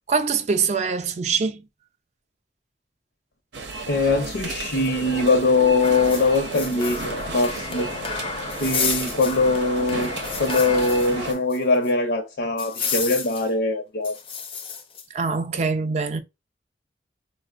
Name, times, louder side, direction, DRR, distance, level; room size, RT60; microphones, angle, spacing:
voice 1, 0.1-1.6 15.1-16.2, right 5 dB, 40° right, 0.4 m, -23 dB
sound 1, 3.5-11.3, right 3 dB, 85° right, 0.7 m, -33 dB
voice 2, 3.9-7.9 8.6-10.1 10.4-14.2, left 3 dB, 85° left, 0.6 m, -22 dB
sound 2, 5.8-11.6 11.8-11.9 12.6-13.5 14.0-15.0, left 6 dB, 30° left, 0.4 m, -31 dB
4.1 x 2.0 x 2.4 m
head